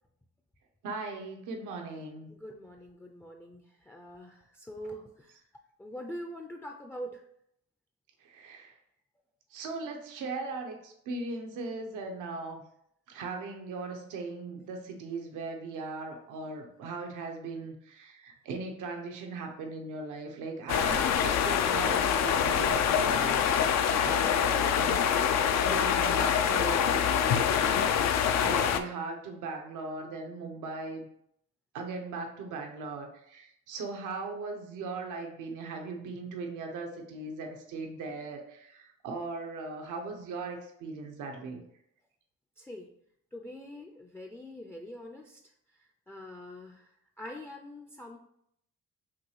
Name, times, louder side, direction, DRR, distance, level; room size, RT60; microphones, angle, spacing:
voice 1, 0.8-2.3 8.2-8.7 9.5-12.6 13.1-31.1 31.7-41.6, right 3 dB, 85° right, 3 dB, 0.9 m, -39 dB
voice 2, 2.3-5.4 5.8-7.2 42.6-42.9 43.3-45.4 45.8-48.2, equal, 10° left, 3 dB, 0.4 m, -44 dB
sound 1, 20.7-28.8, left 8 dB, 65° left, 0.4 m, -25 dB
5.9 x 2.3 x 3.1 m, 0.72 s
cardioid pair, 90°, 30 cm